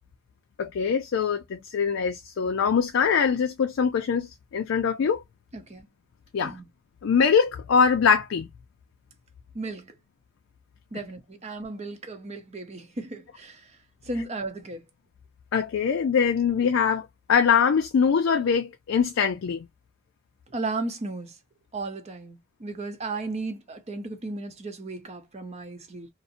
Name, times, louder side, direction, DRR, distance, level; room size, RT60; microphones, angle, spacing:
voice 1, 0.6-5.2 6.3-6.5 7.0-8.5 15.5-19.7, left 6 dB, 75° left, 0.4 m, -23 dB
voice 2, 9.5-9.9 10.9-13.6 14.0-14.8 20.5-21.3 21.7-26.1, right 3 dB, 35° right, 0.6 m, -35 dB
2.6 x 2.0 x 2.6 m
head